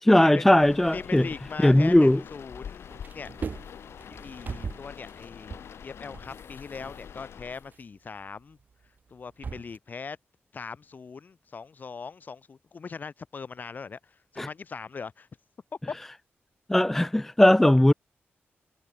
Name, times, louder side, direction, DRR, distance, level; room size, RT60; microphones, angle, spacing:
voice 1, 0.0-1.3 1.6-2.2 14.4-14.5 16.7-17.9, left 1 dB, 5° left, 0.3 m, -19 dB
sound 1, 0.6-7.7, left 8 dB, 75° left, 5.2 m, -45 dB
voice 2, 0.9-2.9 3.1-3.3 4.1-5.5 5.8-8.6 9.1-10.2 10.5-15.3, left 5 dB, 45° left, 3.5 m, -40 dB
sound 2, 1.1-2.5 2.8-9.8, right 5 dB, 45° right, 1.2 m, -42 dB
wide cardioid pair, 140°, 4 cm